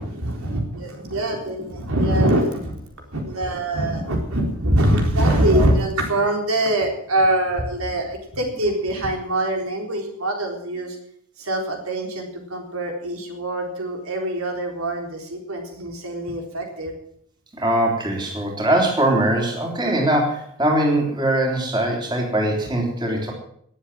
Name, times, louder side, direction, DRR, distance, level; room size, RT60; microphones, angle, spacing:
voice 1, 0.0-2.8 3.1-11.0 11.4-16.9, right 1 dB, 80° right, 2 dB, 3.9 m, -23 dB
voice 2, 17.6-23.3, right 1 dB, 20° right, 0 dB, 3.6 m, -21 dB
20.5 x 7.9 x 7.6 m, 0.67 s
head